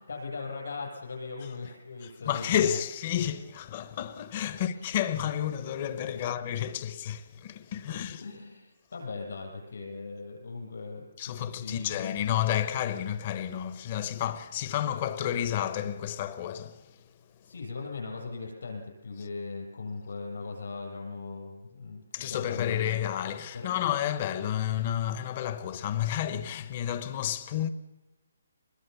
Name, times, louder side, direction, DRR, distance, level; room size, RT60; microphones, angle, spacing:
voice 1, 0.1-2.8 4.5-5.0 6.1-6.4 7.9-12.2 17.4-22.0 22.3-23.1 23.5-23.8, left 4 dB, 70° left, 7.3 m, -39 dB
voice 2, 2.3-8.2 11.2-16.8 22.1-27.7, left 10 dB, 30° left, 1.0 m, -31 dB
24.0 x 21.5 x 7.1 m
hypercardioid pair, 170°, 0 cm